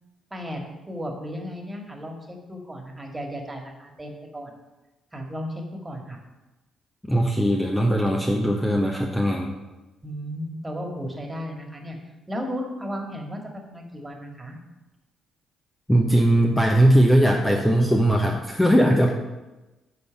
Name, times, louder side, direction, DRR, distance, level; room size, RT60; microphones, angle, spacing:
voice 1, 0.3-4.5 5.1-6.2 10.0-12.0 12.3-14.6, equal, 15° right, 2 dB, 2.0 m, -34 dB
voice 2, 7.0-9.5 15.9-19.1, right 1 dB, 10° left, 1 dB, 0.9 m, -19 dB
10.0 x 4.0 x 5.7 m, 1.1 s
figure-of-eight pair, 45°, 0 cm